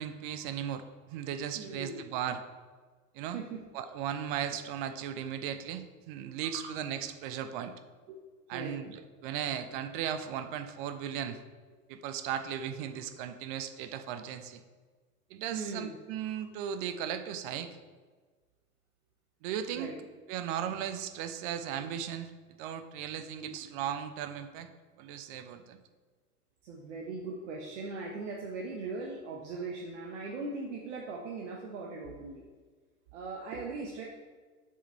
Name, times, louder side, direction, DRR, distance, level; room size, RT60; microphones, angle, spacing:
voice 1, 0.0-2.4 3.1-3.4 3.7-7.7 8.5-11.4 11.9-14.6 15.3-17.8 19.4-19.9 20.3-22.3 22.6-24.7 25.0-25.8, right 9 dB, 35° right, 10 dB, 0.6 m, -36 dB
voice 2, 1.5-2.0 3.3-3.7 4.5-4.6 6.4-6.7 8.1-8.2 8.5-8.8 15.5-16.0 19.7-20.0 23.4-23.5 26.6-32.4 33.1-34.0, right 3 dB, 50° right, -1 dB, 1.0 m, -39 dB
7.0 x 4.8 x 4.4 m, 1.4 s
figure-of-eight pair, 90°, 44 cm